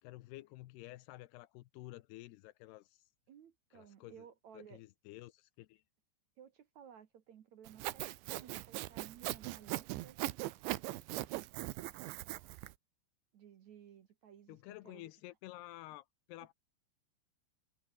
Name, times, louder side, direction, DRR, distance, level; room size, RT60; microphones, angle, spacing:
voice 1, 0.0-3.1 3.7-4.3 4.5-5.8 14.5-16.5, left 18 dB, 75° left, 2.6 m, -51 dB
voice 2, 3.3-4.8 6.4-10.2 13.3-14.6 14.8-15.1, right 9 dB, 60° right, 1.9 m, -57 dB
Sawing, 7.7-12.7, right 18 dB, 85° right, 3.2 m, -40 dB
omnidirectional pair, 5.3 m